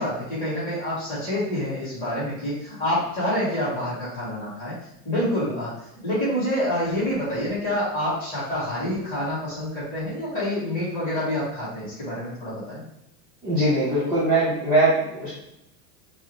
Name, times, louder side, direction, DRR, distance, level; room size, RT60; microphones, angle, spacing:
voice 1, 0.0-4.8 5.0-5.7 6.0-12.8, left 1 dB, 15° left, -9 dB, 1.4 m, -27 dB
voice 2, 13.4-15.3, right 1 dB, 10° right, -13 dB, 0.4 m, -21 dB
4.6 x 2.0 x 3.1 m, 0.85 s
supercardioid pair, 175°, 48 cm